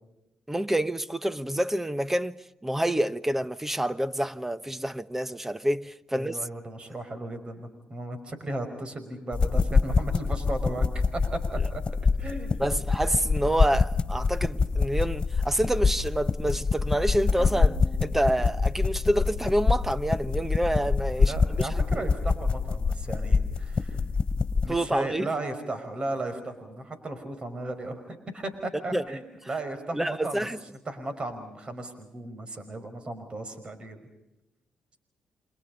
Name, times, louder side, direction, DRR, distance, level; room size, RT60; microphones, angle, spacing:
voice 1, 0.5-6.4 12.6-22.1 24.7-25.3 28.9-29.0 29.9-30.6, right 1 dB, 10° right, 1.1 m, -28 dB
voice 2, 6.1-11.8 12.2-12.5 21.2-24.0 24.6-30.5 30.9-34.1, right 2 dB, 35° right, 5.5 m, -35 dB
sound 1, 9.3-24.7, left 4 dB, 35° left, 2.9 m, -25 dB
sound 2, 17.4-20.2, left 2 dB, 10° left, 3.4 m, -46 dB
29.0 x 26.5 x 5.3 m
supercardioid pair, 65°, 3 cm